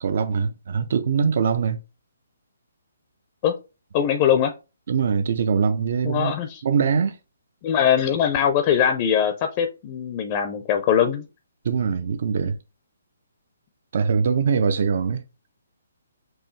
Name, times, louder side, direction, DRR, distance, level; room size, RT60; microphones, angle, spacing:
voice 1, 0.0-1.8 4.9-6.3 6.6-7.2 11.6-12.6 13.9-15.2, right 6 dB, 55° right, 0.4 m, -22 dB
voice 2, 3.9-4.5 6.0-6.6 7.6-11.2, left 8 dB, 25° left, 0.4 m, -21 dB
4.6 x 2.6 x 3.1 m
hypercardioid pair, 160°, 0 cm